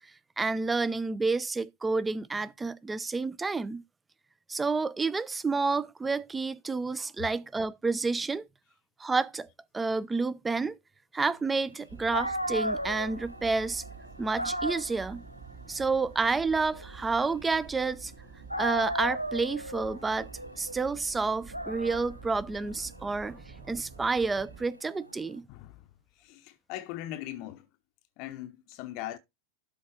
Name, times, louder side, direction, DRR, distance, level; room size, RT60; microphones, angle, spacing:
voice 1, 0.4-3.8 4.5-8.5 9.0-9.5 9.7-10.8 11.1-13.8 14.2-15.2 15.7-18.1 18.6-20.3 20.6-25.5, right 4 dB, 10° right, 0.5 m, -29 dB
Dog, 11.8-11.9 12.1-18.1 18.5-25.3, equal, 90° right, 0.6 m, -37 dB
sound 1, 11.9-24.7, right 5 dB, 40° right, 2.0 m, -49 dB
voice 2, 25.5-25.9 26.1-27.7 28.2-29.2, left 13 dB, 45° left, 0.7 m, -40 dB
12.0 x 4.0 x 4.5 m
figure-of-eight pair, 90°, 0 cm